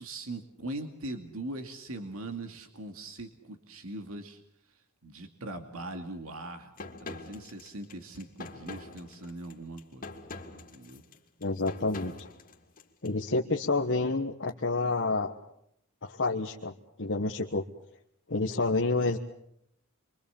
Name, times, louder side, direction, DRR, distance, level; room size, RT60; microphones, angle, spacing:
voice 1, 0.0-4.4 5.0-10.2 10.5-11.0, right 2 dB, 70° right, 5 dB, 2.4 m, -41 dB
sound 1, 6.8-13.1, left 3 dB, 40° left, 2.8 m, -44 dB
voice 2, 11.4-12.1 13.0-15.3 16.0-16.7 17.0-17.6 18.3-19.2, left 3 dB, 55° left, 1 dB, 1.4 m, -28 dB
27.5 x 24.0 x 7.2 m, 0.73 s
head